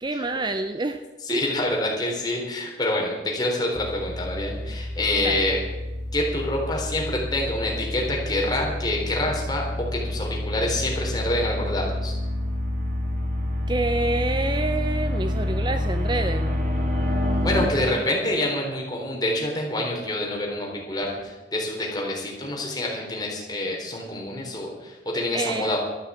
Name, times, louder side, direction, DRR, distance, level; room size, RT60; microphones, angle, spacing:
voice 1, 0.0-1.0 1.3-1.4 5.1-5.5 13.7-16.6 17.8-18.0 25.3-25.8, right 2 dB, 25° right, 8 dB, 0.6 m, -28 dB
voice 2, 1.2-5.6 6.1-9.6 9.9-12.1 17.4-25.8, left 1 dB, 25° left, -1 dB, 3.9 m, -27 dB
sound 1, 3.8-17.6, left 1 dB, 45° right, 2.2 m, -28 dB
13.0 x 9.3 x 8.4 m, 1.1 s
head